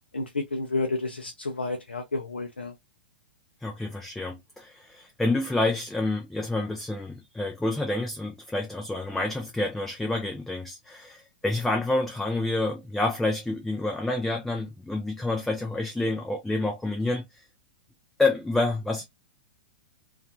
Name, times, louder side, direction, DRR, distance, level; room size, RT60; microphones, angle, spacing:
voice 1, 0.1-2.7, left 3 dB, 90° left, 0.4 m, -30 dB
voice 2, 3.6-17.4 18.2-19.0, left 2 dB, 5° left, 0.4 m, -28 dB
2.4 x 2.3 x 2.5 m
figure-of-eight pair, 105°, 6 cm